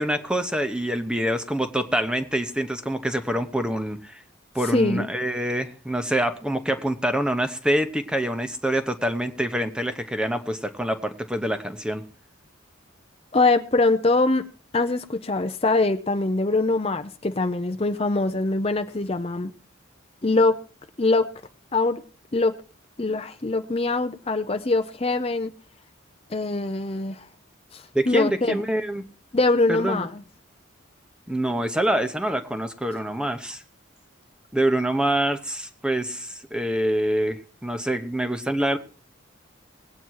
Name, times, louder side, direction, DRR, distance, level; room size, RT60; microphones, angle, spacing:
voice 1, 0.0-4.2 4.5-12.1 27.9-29.0 29.7-30.1 31.3-33.6 34.5-38.8, right 1 dB, 5° right, 9 dB, 0.9 m, -26 dB
voice 2, 4.7-5.1 13.3-14.4 14.7-19.5 20.2-20.5 21.0-21.3 21.7-22.0 22.3-22.5 23.0-25.5 26.3-27.2 27.7-28.6 29.3-30.2, left 2 dB, 30° left, 8 dB, 0.6 m, -23 dB
19.0 x 8.8 x 4.7 m, 0.39 s
head